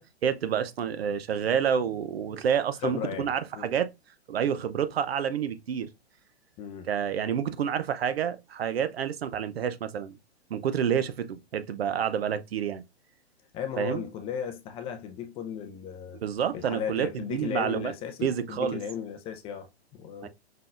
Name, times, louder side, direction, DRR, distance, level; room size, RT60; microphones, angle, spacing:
voice 1, 0.2-3.9 4.3-5.9 6.9-10.2 10.5-12.8 13.8-14.0 16.2-17.9 18.2-18.8 20.2-20.3, right 8 dB, 65° right, 0.8 m, -28 dB
voice 2, 2.8-3.7 6.6-6.9 13.5-16.2 16.5-20.3, left 8 dB, 15° left, 0.5 m, -36 dB
5.5 x 3.7 x 2.5 m
figure-of-eight pair, 115°, 33 cm